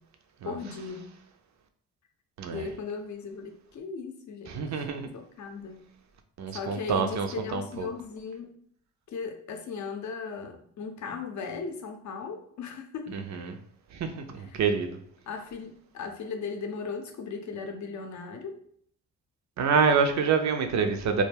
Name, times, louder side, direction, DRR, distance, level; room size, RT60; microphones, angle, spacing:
voice 1, 0.4-1.1 2.5-4.8 5.1-5.8 6.5-8.6 9.1-13.2 14.4-14.7 15.3-18.6, left 5 dB, 50° left, 5 dB, 0.6 m, -37 dB
voice 2, 4.5-5.1 6.4-7.9 13.3-13.6 13.9-15.0 19.6-21.2, right 5 dB, 50° right, 6 dB, 0.5 m, -27 dB
2.2 x 2.1 x 3.3 m, 0.63 s
hypercardioid pair, 50°, 38 cm